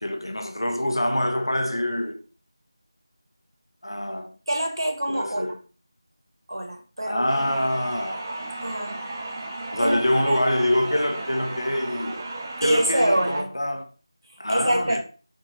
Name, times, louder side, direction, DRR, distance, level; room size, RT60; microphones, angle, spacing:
voice 1, 0.0-2.2 3.8-4.3 5.1-5.6 7.0-8.2 9.7-12.3 12.6-13.8 14.4-15.0, left 1 dB, 75° left, 0.8 m, -25 dB
voice 2, 4.5-5.5 6.5-7.3 8.6-9.0 9.8-10.4 12.6-13.5 14.5-15.0, right 1 dB, 70° right, 1.3 m, -25 dB
sound 1, 7.3-13.4, right 2 dB, 25° right, 0.7 m, -35 dB
4.2 x 3.7 x 3.3 m
figure-of-eight pair, 170°, 2 cm